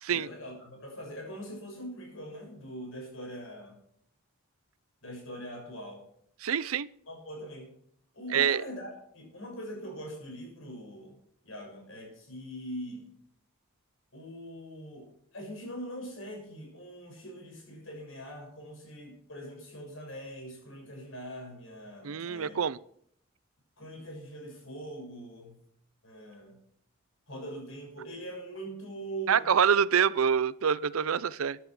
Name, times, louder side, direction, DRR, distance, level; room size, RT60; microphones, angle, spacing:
voice 1, 0.1-3.8 5.0-6.0 7.1-7.7 8.1-11.2 11.4-13.1 14.1-22.6 23.8-25.6 26.0-26.6 27.3-29.4, equal, 65° left, 1 dB, 6.6 m, -42 dB
voice 2, 6.4-6.9 8.3-8.6 22.0-22.8 29.3-31.6, right 7 dB, 85° right, 20 dB, 0.5 m, -26 dB
15.0 x 10.5 x 6.0 m, 0.68 s
head